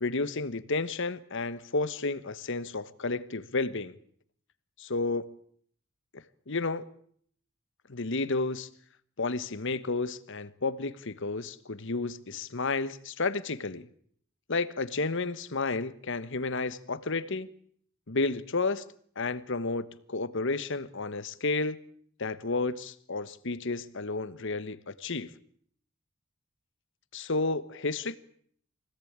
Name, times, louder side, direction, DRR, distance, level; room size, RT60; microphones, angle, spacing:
voice 1, 0.0-4.0 4.8-5.4 6.1-6.9 7.9-8.7 9.2-13.9 14.5-17.5 18.1-18.8 19.2-21.8 22.2-25.3 27.1-28.2, left 3 dB, 60° left, 1.2 m, -31 dB
24.5 x 18.0 x 8.8 m
head